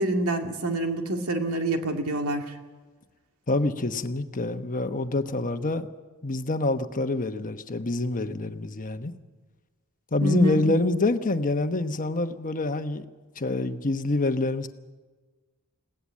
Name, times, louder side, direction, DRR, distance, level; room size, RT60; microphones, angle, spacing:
voice 1, 0.0-2.4 10.2-10.6, right 1 dB, 85° right, 3 dB, 2.2 m, -26 dB
voice 2, 3.5-5.9 6.2-9.1 10.1-13.1 13.4-14.7, left 2 dB, 40° left, 8 dB, 1.1 m, -26 dB
21.5 x 17.0 x 7.5 m, 1.3 s
head